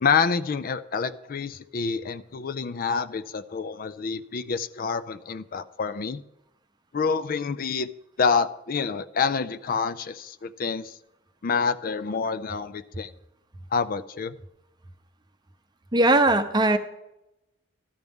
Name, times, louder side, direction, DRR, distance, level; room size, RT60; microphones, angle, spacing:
voice 1, 0.0-6.2 6.9-7.9 8.2-11.0 11.4-13.1 13.7-14.4, left 5 dB, 45° left, 13 dB, 0.4 m, -27 dB
voice 2, 15.9-16.8, right 2 dB, 20° right, 9 dB, 0.7 m, -19 dB
14.5 x 12.0 x 3.6 m, 0.89 s
head